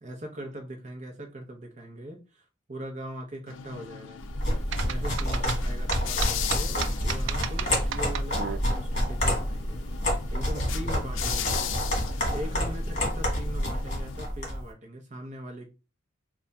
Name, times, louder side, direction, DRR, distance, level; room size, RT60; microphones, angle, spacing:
voice 1, 0.0-4.2 4.8-11.9 12.3-15.7, right 1 dB, 40° right, 0.7 m, -40 dB
sound 1, 3.5-14.2, left 9 dB, 75° left, 0.4 m, -38 dB
sound 2, 4.3-14.6, equal, 40° left, 1.8 m, -28 dB
sound 3, 4.7-8.6, right 9 dB, 70° right, 0.4 m, -34 dB
3.4 x 2.3 x 4.0 m
head